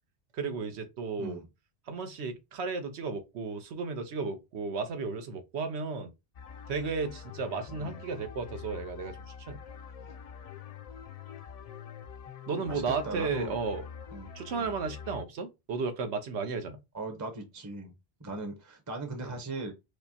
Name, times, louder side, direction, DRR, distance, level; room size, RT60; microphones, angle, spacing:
voice 1, 0.3-1.4 1.9-6.1 6.7-9.2 9.5-9.6 12.5-13.8 14.3-16.8, right 4 dB, 90° right, 1.0 m, -34 dB
sound 1, 6.3-15.2, left 7 dB, 55° left, 0.4 m, -45 dB
voice 2, 12.7-13.6 14.1-14.3 14.6-14.7 16.9-17.9 18.2-19.7, right 2 dB, 20° right, 0.6 m, -38 dB
4.8 x 2.1 x 2.7 m
omnidirectional pair, 1.1 m